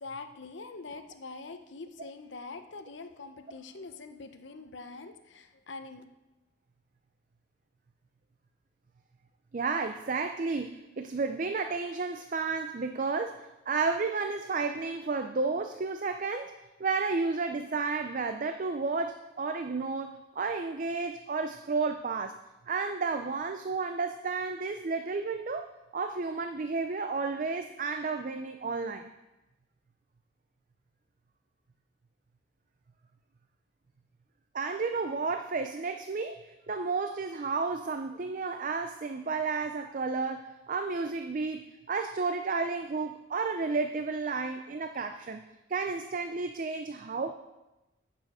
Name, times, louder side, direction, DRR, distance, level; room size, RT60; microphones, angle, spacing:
voice 1, 0.0-6.0, left 3 dB, 70° left, 8 dB, 0.8 m, -44 dB
voice 2, 9.5-22.4 22.7-25.7 25.9-29.1 34.5-45.4 45.7-47.3, right 4 dB, 40° right, 8 dB, 0.5 m, -32 dB
15.0 x 6.8 x 4.9 m, 1.0 s
head